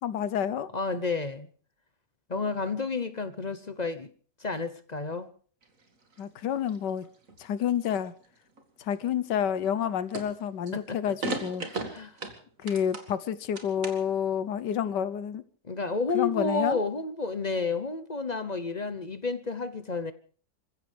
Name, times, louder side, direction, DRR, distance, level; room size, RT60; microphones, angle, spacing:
voice 1, 0.0-0.7 6.2-7.1 7.4-8.1 8.8-11.7 12.6-15.4 16.1-16.8, left 9 dB, 75° left, 1.6 m, -29 dB
voice 2, 0.7-1.5 2.3-4.1 4.4-5.3 10.7-11.0 11.9-12.1 15.6-20.1, left 4 dB, 35° left, 0.8 m, -31 dB
sound 1, 5.6-6.2 6.7-8.3 8.6-9.1 9.6-9.9 10.1-10.7 11.2-13.1 13.4-14.2, right 3 dB, 50° right, 2.6 m, -37 dB
27.0 x 15.5 x 3.4 m
omnidirectional pair, 1.9 m